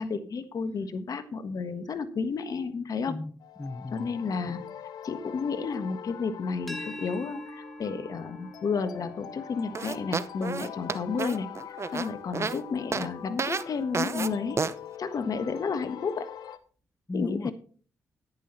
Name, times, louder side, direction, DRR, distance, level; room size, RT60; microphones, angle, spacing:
voice 1, 0.0-3.1 3.9-4.6 5.0-11.5 11.9-14.6 15.0-16.3 17.1-17.5, left 5 dB, 65° left, 1.4 m, -31 dB
voice 2, 3.1-4.1 17.1-17.5, left 2 dB, 20° left, 0.7 m, -35 dB
sound 1, 3.4-16.6, left 9 dB, 80° left, 0.8 m, -44 dB
sound 2, 6.7-12.4, equal, ahead, 2.5 m, -46 dB
sound 3, 9.7-12.6 12.9-13.1 13.4-13.6 13.9-14.3 14.6-14.7, right 5 dB, 40° right, 0.8 m, -30 dB
10.5 x 10.5 x 4.1 m
supercardioid pair, 45°, 7 cm